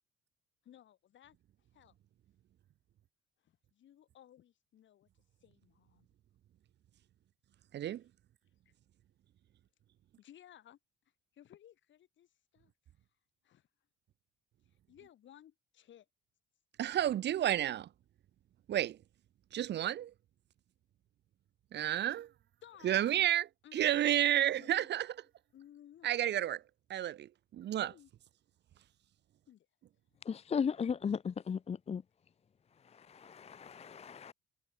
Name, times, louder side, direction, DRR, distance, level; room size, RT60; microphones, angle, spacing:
voice 1, 0.6-1.4 1.7-2.0 3.4-6.1 8.6-8.7 10.2-10.8 11.3-12.7 13.4-13.7 14.6-16.1 22.6-23.3 23.6-24.0 24.6-24.9 25.5-26.1 27.9-28.1 29.5-29.7, left 11 dB, 70° left, 6.4 m, -59 dB
voice 2, 7.7-8.0 16.8-17.9 18.7-19.0 19.5-20.1 21.7-22.3 22.8-23.5 23.7-25.1 26.0-26.6 26.9-27.9, right 11 dB, 60° right, 0.7 m, -31 dB
voice 3, 30.2-32.0 32.8-34.3, left 6 dB, 30° left, 0.6 m, -36 dB
cardioid pair, 90°, 20 cm